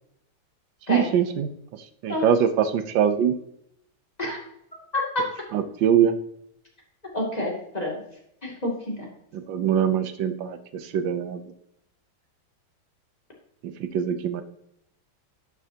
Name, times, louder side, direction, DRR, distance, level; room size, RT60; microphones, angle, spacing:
voice 1, 0.9-1.5 2.0-3.3 5.5-6.1 9.5-10.6 10.9-11.4 13.6-14.4, right 8 dB, 70° right, 9 dB, 1.5 m, -22 dB
voice 2, 4.9-5.2 7.1-8.0 8.4-9.1, left 1 dB, 20° left, -2 dB, 2.5 m, -28 dB
11.0 x 6.8 x 2.8 m, 0.74 s
omnidirectional pair, 2.2 m